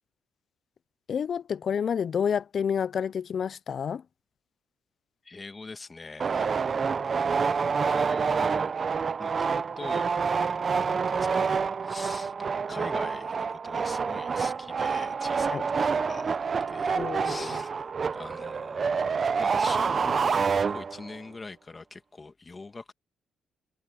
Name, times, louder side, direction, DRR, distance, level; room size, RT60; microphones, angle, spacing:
voice 1, 1.1-4.0 15.5-15.6 16.9-17.6, left 7 dB, 55° left, 0.5 m, -29 dB
voice 2, 5.2-7.1 7.5-8.7 9.2-19.1 19.4-22.9, left 3 dB, 25° left, 2.1 m, -44 dB
sound 1, 6.2-21.2, right 5 dB, 40° right, 0.8 m, -27 dB
cardioid pair, 90°, 0 cm